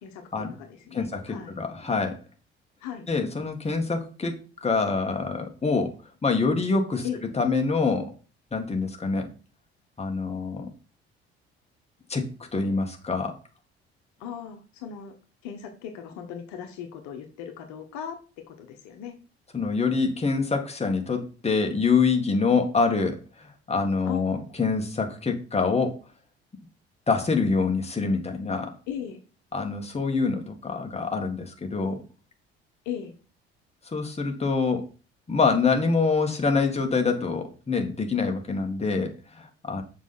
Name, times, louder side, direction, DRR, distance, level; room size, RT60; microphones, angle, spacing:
voice 1, 0.0-1.6 2.8-3.1 7.0-7.2 14.2-15.1 15.4-18.2 18.5-19.2 24.1-24.2 28.9-29.2 32.8-33.1, left 8 dB, 65° left, 5 dB, 1.3 m, -37 dB
voice 2, 0.9-2.2 3.1-6.0 6.2-7.1 7.3-8.1 8.5-9.3 10.0-10.7 12.1-13.4 19.5-26.0 27.1-28.7 29.5-32.0 33.9-34.9 35.3-39.8, left 4 dB, 20° left, 4 dB, 2.0 m, -25 dB
7.0 x 5.5 x 4.5 m, 0.35 s
figure-of-eight pair, 55°, 31 cm